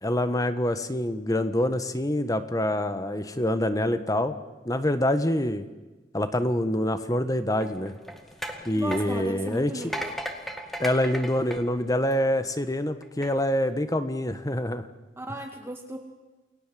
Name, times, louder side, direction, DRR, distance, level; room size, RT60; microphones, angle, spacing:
voice 1, 0.0-4.4 4.6-5.7 6.1-7.9 8.6-9.7 10.8-14.9, left 1 dB, 20° left, 10 dB, 1.4 m, -26 dB
sound 1, 7.5-12.5 13.0-13.3, equal, ahead, 2.3 m, -37 dB
voice 2, 8.8-10.1 15.2-16.0, right 1 dB, 15° right, 3 dB, 2.0 m, -36 dB
29.0 x 20.0 x 7.7 m, 1.2 s
head